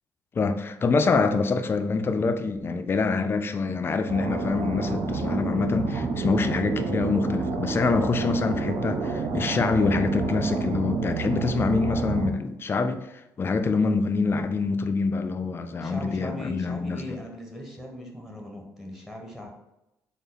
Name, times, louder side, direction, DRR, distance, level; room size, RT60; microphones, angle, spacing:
voice 1, 0.3-13.1 13.4-17.2, left 4 dB, 35° left, 9 dB, 0.4 m, -25 dB
sound 1, 4.1-12.3, right 4 dB, 60° right, 0.5 m, -29 dB
voice 2, 15.8-19.5, left 1 dB, 5° right, 1 dB, 1.0 m, -39 dB
3.9 x 2.0 x 3.8 m, 0.88 s
cardioid pair, 85°, 7 cm